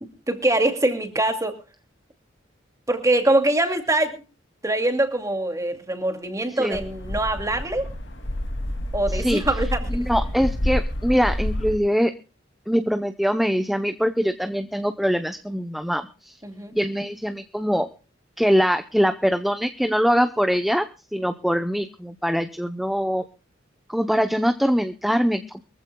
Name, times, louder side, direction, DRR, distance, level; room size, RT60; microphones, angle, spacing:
voice 1, 0.3-1.6 2.9-4.2 4.6-7.9 8.9-10.1 16.4-16.8, right 1 dB, 15° right, 6 dB, 2.4 m, -23 dB
sound 1, 6.7-11.8, left 1 dB, 65° left, 2.5 m, -28 dB
voice 2, 9.1-9.4 9.9-12.1 12.7-16.4 16.7-17.9 18.4-23.2 23.9-25.6, equal, ahead, 8 dB, 0.7 m, -23 dB
23.5 x 15.0 x 2.3 m, 0.33 s
head